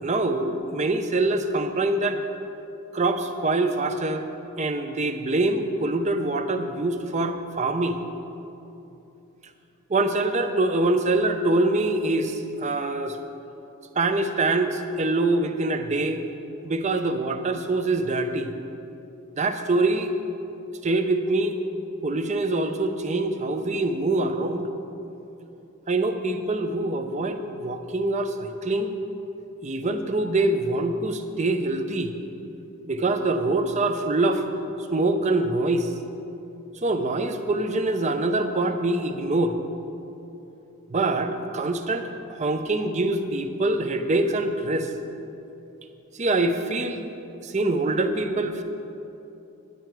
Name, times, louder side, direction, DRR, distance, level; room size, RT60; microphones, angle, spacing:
voice 1, 0.0-2.2 2.9-4.2 4.6-8.0 9.9-13.2 14.0-16.2 16.6-18.5 19.4-20.1 20.8-21.6 22.0-24.6 25.9-28.9 29.6-32.1 32.9-34.4 34.9-35.9 36.8-39.6 40.9-42.1 42.4-44.9 46.1-47.0 47.4-48.6, right 2 dB, 30° right, 7 dB, 0.6 m, -24 dB
9.9 x 9.5 x 4.5 m, 2.8 s
head